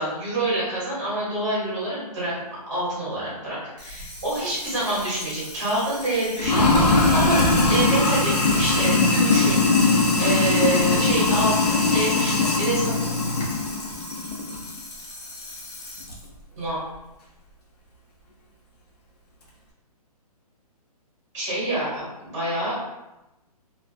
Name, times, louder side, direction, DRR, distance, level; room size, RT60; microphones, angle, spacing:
voice 1, 0.0-2.4 2.7-7.4 7.7-12.9 16.6-16.8 21.3-22.8, right 1 dB, 25° right, -8 dB, 0.9 m, -27 dB
Sink (filling or washing), 3.8-16.1, left 3 dB, 85° left, 0.8 m, -22 dB
2.4 x 2.1 x 2.5 m, 0.96 s
hypercardioid pair, 180°, 20 cm